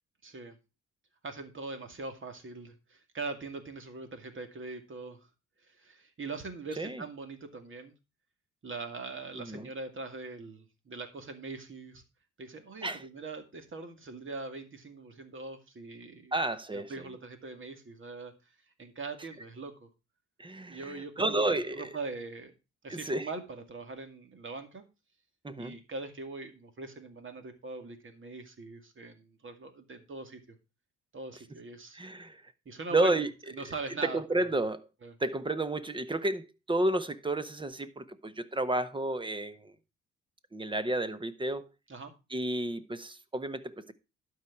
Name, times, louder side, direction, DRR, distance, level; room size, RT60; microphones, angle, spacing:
voice 1, 0.2-0.6 1.2-5.2 5.6-7.9 8.6-12.0 12.4-16.4 16.7-18.5 18.8-19.9 20.6-21.4 21.7-22.5 22.8-24.8 25.6-30.6 31.1-32.0 32.7-34.5 35.0-35.1 41.9-42.1, right 3 dB, 40° right, 2.2 m, -42 dB
voice 2, 9.4-9.7 12.8-13.0 16.3-16.9 20.4-21.9 22.9-23.3 25.4-25.7 31.9-32.4 32.9-33.3 34.0-34.9 35.2-39.7 40.5-41.7 42.3-43.9, right 2 dB, 15° right, 0.9 m, -31 dB
12.0 x 4.8 x 5.8 m
cardioid pair, 90°, 30 cm